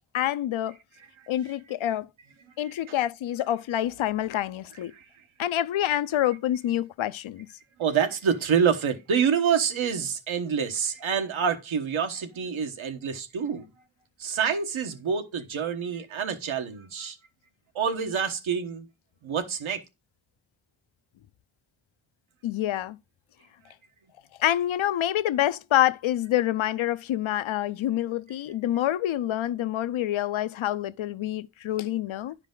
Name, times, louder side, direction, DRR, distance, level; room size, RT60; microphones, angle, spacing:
voice 1, 0.1-0.7 1.3-2.1 2.6-4.9 5.4-7.5 22.4-23.0 24.4-32.4, left 12 dB, 75° left, 0.6 m, -27 dB
voice 2, 2.6-2.9 4.9-5.1 7.8-13.6 14.2-17.2 17.7-18.9 19.2-19.8, right 7 dB, 80° right, 1.3 m, -27 dB
10.5 x 4.9 x 3.8 m
wide cardioid pair, 135°, 47 cm